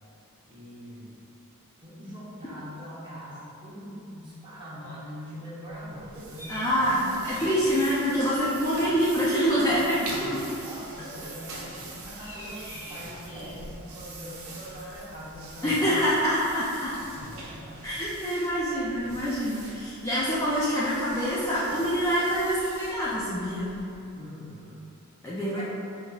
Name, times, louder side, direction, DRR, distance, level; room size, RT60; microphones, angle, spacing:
voice 1, 0.5-1.2 1.8-7.0 7.3-7.6 10.6-16.1 17.1-17.9 24.2-24.9 25.4-25.6, equal, 20° right, -10 dB, 1.0 m, -42 dB
sound 1, 5.7-24.1, right 2 dB, 75° right, 0.7 m, -43 dB
sound 2, 6.4-6.9 7.2-8.7 11.3-11.6 12.0-13.8 16.5-16.6 18.5-18.9 21.8-22.9, left 1 dB, 65° left, 1.3 m, -46 dB
voice 2, 6.5-10.4 15.6-16.9 17.8-23.7 25.2-25.6, equal, 15° left, -9 dB, 0.4 m, -26 dB
5.4 x 2.7 x 2.3 m, 2.7 s
head